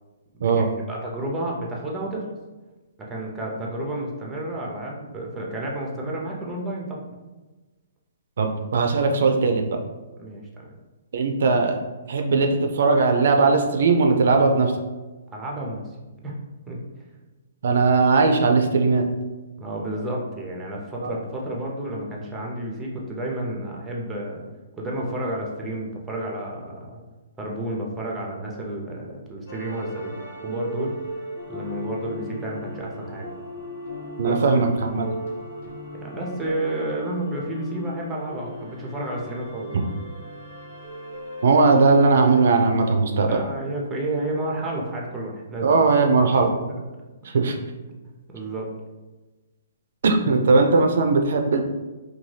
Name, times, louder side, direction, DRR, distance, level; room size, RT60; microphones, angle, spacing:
voice 1, 0.4-2.3 3.0-7.0 10.2-10.7 15.3-15.8 16.2-16.3 16.7-16.8 19.6-24.4 24.8-27.0 27.4-30.2 30.4-30.9 31.5-33.3 34.2-34.6 35.9-39.7 43.3-45.8 46.7-46.8 48.3-48.7, right 1 dB, 10° right, -2 dB, 0.5 m, -31 dB
voice 2, 8.4-9.7 11.1-11.8 12.1-14.7 17.6-19.1 21.0-21.2 34.2-35.1 41.4-43.4 45.6-46.5 47.3-47.6 50.0-51.6, right 4 dB, 65° right, 4 dB, 0.3 m, -19 dB
sound 1, 29.5-42.7, equal, 60° left, 1.0 m, -37 dB
2.7 x 2.2 x 3.1 m, 1.2 s
hypercardioid pair, 155°, 0 cm